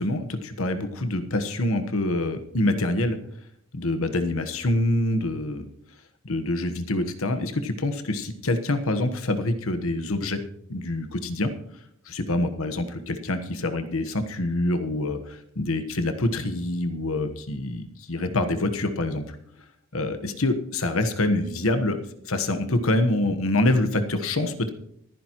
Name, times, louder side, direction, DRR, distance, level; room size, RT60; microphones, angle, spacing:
voice 1, 0.0-3.2 3.7-5.7 6.2-10.4 10.7-11.5 12.1-19.4 19.9-22.0 22.2-24.7, left 2 dB, 70° left, 8 dB, 1.2 m, -26 dB
25.0 x 10.0 x 3.0 m, 0.73 s
head